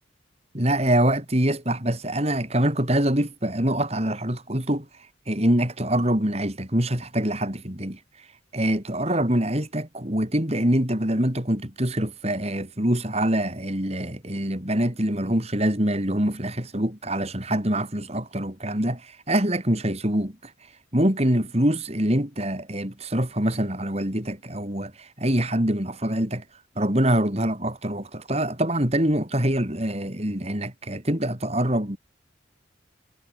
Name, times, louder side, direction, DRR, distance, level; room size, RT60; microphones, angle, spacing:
voice 1, 0.5-4.9 5.3-8.0 8.5-20.3 20.9-26.4 26.8-32.0, right 1 dB, 35° right, 4.0 m, -24 dB
head